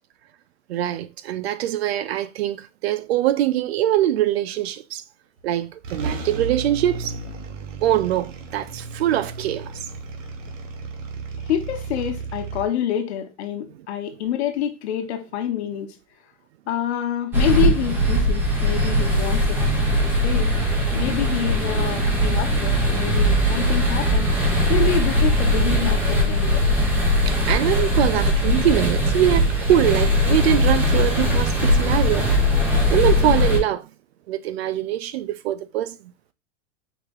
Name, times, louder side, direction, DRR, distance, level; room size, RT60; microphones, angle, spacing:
voice 1, 0.7-5.0 5.4-7.1 7.8-9.7 27.3-32.6 32.9-33.9 34.3-36.0, right 12 dB, 55° right, 0.5 m, -23 dB
sound 1, 5.4-5.5 5.8-12.6, right 4 dB, 90° right, 1.2 m, -33 dB
voice 2, 11.5-16.0 16.7-19.6 20.2-20.5 20.9-24.3 24.7-26.6, left 10 dB, 60° left, 1.1 m, -27 dB
sound 2, 17.3-33.6, equal, 5° right, 0.4 m, -20 dB
4.8 x 2.9 x 3.6 m
supercardioid pair, 170°, 37 cm